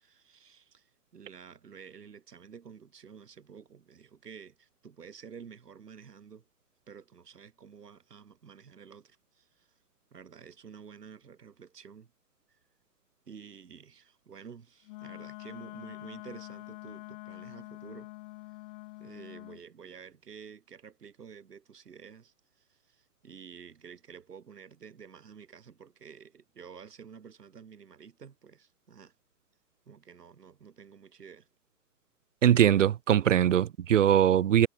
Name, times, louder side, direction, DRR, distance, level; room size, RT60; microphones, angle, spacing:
voice 1, 0.0-6.4 6.9-9.7 10.1-12.1 13.3-18.1 19.0-29.1 29.9-31.5, right 6 dB, 70° right, 4.3 m, -50 dB
Wind instrument woodwind instrument, 14.8-19.6, left 22 dB, 30° left, 2.3 m, -45 dB
voice 2, 32.4-34.7, right 10 dB, 50° right, 0.6 m, -22 dB
figure-of-eight pair, 135°, 49 cm